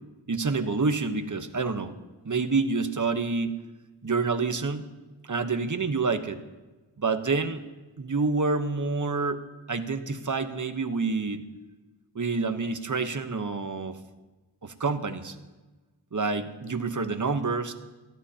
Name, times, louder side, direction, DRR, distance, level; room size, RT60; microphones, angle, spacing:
voice 1, 0.3-1.9 2.2-3.6 4.0-4.9 5.3-6.4 7.0-7.6 8.0-9.4 9.7-11.4 12.1-14.0 14.6-15.4 16.1-17.7, right 4 dB, 40° right, 9 dB, 1.0 m, -28 dB
18.5 x 14.0 x 2.8 m, 1.2 s
wide cardioid pair, 55°, 47 cm